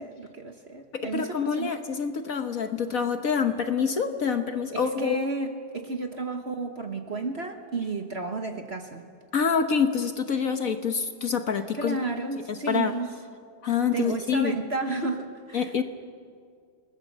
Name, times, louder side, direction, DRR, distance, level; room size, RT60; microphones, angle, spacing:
voice 1, 0.0-1.7 4.7-9.0 11.7-13.1 13.9-15.8, right 3 dB, 40° right, 5 dB, 1.3 m, -32 dB
voice 2, 0.9-5.2 9.3-12.0 12.5-12.9 13.6-14.5 15.5-15.8, left 6 dB, 50° left, 7 dB, 1.3 m, -26 dB
29.5 x 19.5 x 7.4 m, 2.2 s
omnidirectional pair, 2.1 m